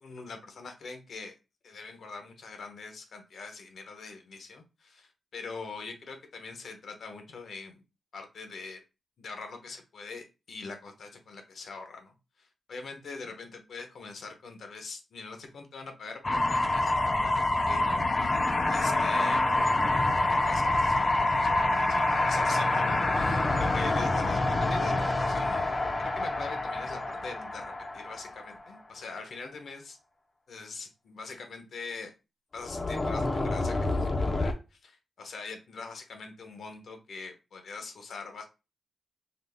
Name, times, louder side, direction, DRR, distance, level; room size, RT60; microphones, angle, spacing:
voice 1, 0.0-1.3 1.6-7.8 8.1-8.8 9.2-18.1 18.7-25.7 26.0-30.0 30.5-32.1 32.5-38.4, left 4 dB, 70° left, 5 dB, 0.8 m, -43 dB
sound 1, 16.2-28.6 32.6-34.5, left 2 dB, 25° left, 0.4 m, -27 dB
3.9 x 2.1 x 3.3 m, 0.28 s
wide cardioid pair, 130°, 0 cm